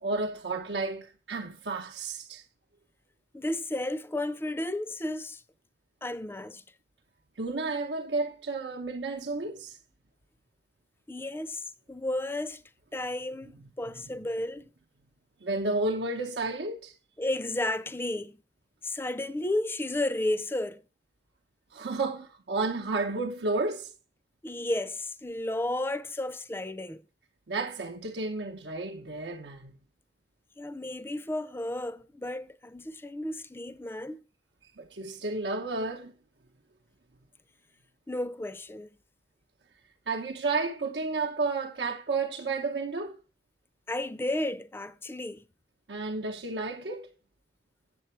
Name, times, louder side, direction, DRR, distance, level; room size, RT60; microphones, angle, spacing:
voice 1, 0.0-2.4 7.4-9.8 13.6-13.7 15.4-16.9 21.7-23.9 27.5-29.8 34.8-36.1 40.1-43.2 45.9-47.1, right 3 dB, 80° right, 0.8 m, -32 dB
voice 2, 3.3-5.4 6.0-6.6 11.1-12.6 12.9-14.6 17.2-18.4 18.8-20.8 24.4-27.0 30.6-34.2 38.1-38.9 43.9-45.4, left 1 dB, 15° left, 0.4 m, -33 dB
7.8 x 7.5 x 4.3 m
head